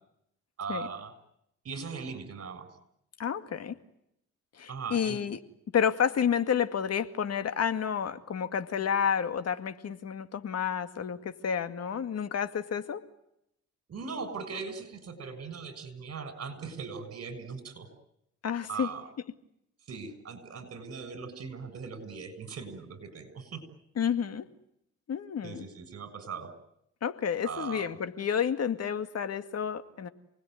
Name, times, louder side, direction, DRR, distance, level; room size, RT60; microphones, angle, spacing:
voice 1, 0.6-1.1 1.6-2.7 4.7-5.2 13.9-17.9 18.7-19.0 19.9-23.6 25.4-26.5 27.4-27.9, right 5 dB, 50° right, 11 dB, 7.1 m, -39 dB
voice 2, 3.2-3.8 4.5-5.4 5.7-13.0 18.4-18.9 24.0-24.5 25.1-25.7 27.0-30.1, left 7 dB, 55° left, 10 dB, 2.2 m, -30 dB
29.0 x 20.0 x 9.5 m, 0.80 s
cardioid pair, 90°, 30 cm